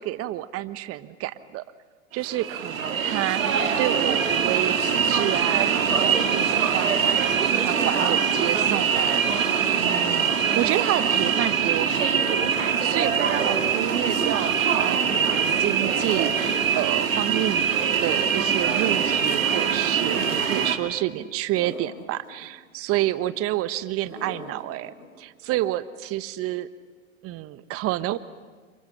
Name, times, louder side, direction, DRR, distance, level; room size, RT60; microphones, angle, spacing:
voice 1, 0.0-1.6 2.1-17.7 18.0-26.7 27.2-28.2, right 15 dB, 35° right, 14 dB, 1.2 m, -29 dB
sound 1, 2.2-20.8, right 7 dB, 75° right, 2.8 m, -23 dB
sound 2, 21.6-22.5 24.1-25.1, left 1 dB, 90° left, 6.3 m, -41 dB
29.5 x 27.0 x 6.5 m, 1.4 s
hypercardioid pair, 100°, 40 cm